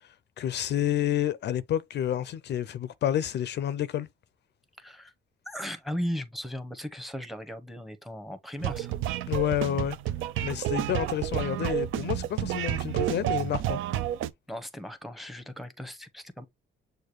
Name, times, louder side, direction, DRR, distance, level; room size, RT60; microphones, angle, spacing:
voice 1, 0.4-4.1 9.3-10.0 10.4-13.8, left 11 dB, 60° left, 0.4 m, -29 dB
voice 2, 4.8-5.1 5.4-9.0 14.5-16.4, equal, ahead, 0.8 m, -37 dB
sound 1, 8.6-14.3, right 12 dB, 80° right, 0.4 m, -30 dB
6.5 x 2.2 x 3.0 m
cardioid pair, 90°, 20 cm